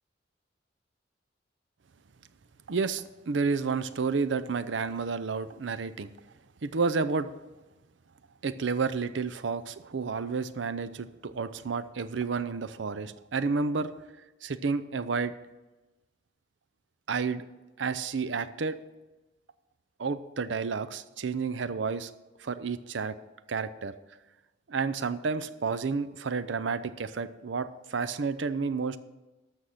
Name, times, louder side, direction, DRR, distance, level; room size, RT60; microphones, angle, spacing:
voice 1, 2.7-6.1 6.6-7.3 8.4-13.9 14.4-15.3 17.1-17.5 17.8-18.8 20.0-22.1 22.4-23.2 23.5-23.9 24.7-29.0, right 4 dB, 70° right, 13 dB, 0.6 m, -30 dB
12.5 x 6.4 x 5.7 m, 1.1 s
head